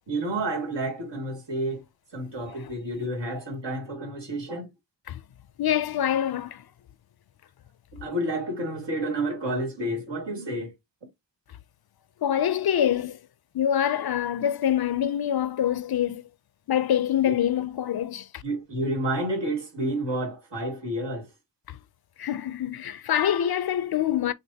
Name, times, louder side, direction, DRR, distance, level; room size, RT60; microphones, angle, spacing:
voice 1, 0.1-1.8 2.1-4.7 8.0-10.7 18.4-21.3, right 1 dB, 75° right, 2.3 m, -30 dB
voice 2, 5.6-6.6 12.2-13.2 13.5-16.2 16.7-18.4 21.7-21.8 22.2-24.3, left 10 dB, 60° left, 0.5 m, -25 dB
6.4 x 2.5 x 2.7 m
wide cardioid pair, 135°, 43 cm